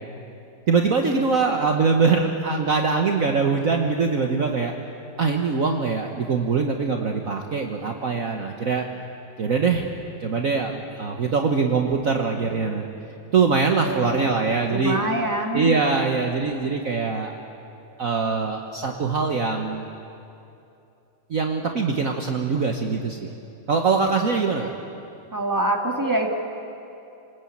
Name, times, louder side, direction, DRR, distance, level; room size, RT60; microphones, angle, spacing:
voice 1, 0.7-4.7 5.2-8.8 9.4-9.9 10.2-12.9 13.3-15.0 15.5-17.3 18.0-19.8 21.3-23.3 23.7-24.7, right 4 dB, 50° right, 3 dB, 1.6 m, -23 dB
voice 2, 13.8-14.4 14.7-15.9 24.0-24.1 25.3-26.3, right 1 dB, 10° right, 1 dB, 2.3 m, -25 dB
29.5 x 20.5 x 8.7 m, 2.7 s
omnidirectional pair, 2.0 m